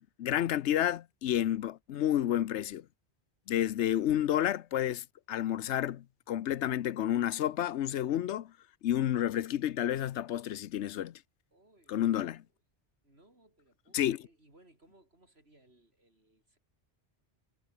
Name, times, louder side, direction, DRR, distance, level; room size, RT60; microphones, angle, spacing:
voice 1, 0.0-2.8 3.5-8.5 8.8-11.2 11.9-12.4 13.9-14.2, left 11 dB, 90° left, 1.0 m, -30 dB
voice 2, 11.5-12.5 13.0-16.6, right 1 dB, 65° right, 6.9 m, -64 dB
omnidirectional pair, 1.1 m